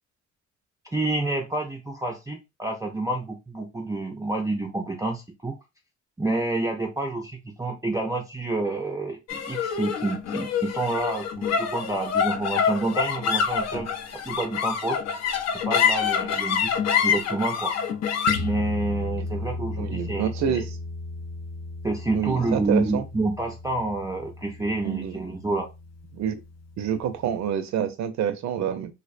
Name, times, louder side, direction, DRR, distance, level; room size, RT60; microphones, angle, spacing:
voice 1, 0.9-5.6 6.2-13.9 14.2-15.0 15.7-16.7 17.0-17.7 18.4-20.6 21.8-25.7, right 2 dB, 10° right, 0.3 m, -28 dB
sound 1, 9.3-25.8, left 6 dB, 60° left, 0.5 m, -28 dB
voice 2, 19.8-20.8 22.1-23.1 24.8-25.3 26.1-26.4 26.8-28.9, right 8 dB, 65° right, 0.5 m, -27 dB
2.4 x 2.1 x 2.5 m
cardioid pair, 90°, 30 cm